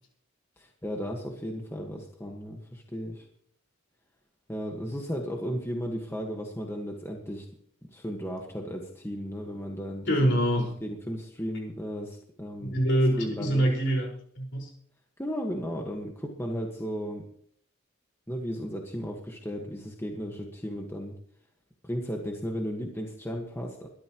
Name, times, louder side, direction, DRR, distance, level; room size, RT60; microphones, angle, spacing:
voice 1, 0.6-3.2 4.5-7.5 7.9-12.7 13.2-13.6 15.2-17.2 18.3-21.1 21.8-23.9, equal, 10° left, 1 dB, 1.5 m, -35 dB
voice 2, 10.1-10.7 12.6-14.1 14.4-14.7, equal, 60° left, -1 dB, 5.1 m, -25 dB
22.0 x 13.0 x 3.1 m, 0.63 s
head